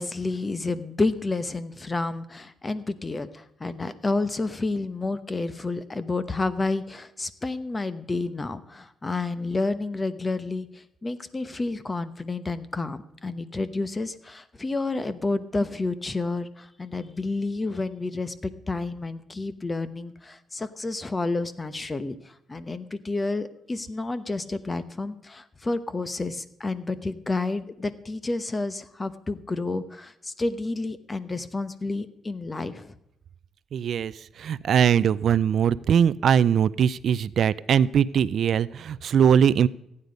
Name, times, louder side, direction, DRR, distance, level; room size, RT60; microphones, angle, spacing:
voice 1, 0.0-22.2 22.5-32.9, left 3 dB, 25° left, 14 dB, 0.9 m, -30 dB
voice 2, 33.7-34.1 34.4-39.7, right 8 dB, 60° right, 19 dB, 0.4 m, -21 dB
15.0 x 9.7 x 5.2 m, 0.80 s
cardioid pair, 90°, 0 cm